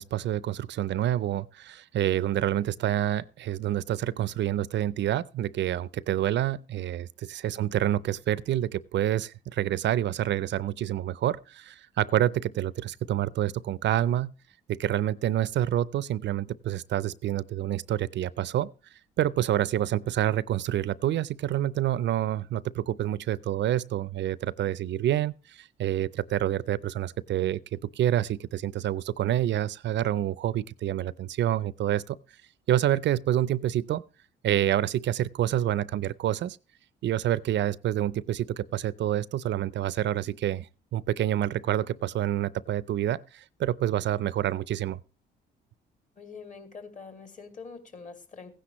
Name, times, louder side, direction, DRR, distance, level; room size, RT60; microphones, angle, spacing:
voice 1, 0.0-14.3 14.7-18.7 19.2-32.2 32.7-34.0 34.4-36.6 37.0-45.0, right 12 dB, 65° right, 0.5 m, -28 dB
voice 2, 46.2-48.5, left 5 dB, 40° left, 2.4 m, -45 dB
15.5 x 10.0 x 3.0 m
cardioid pair, 90°, 20 cm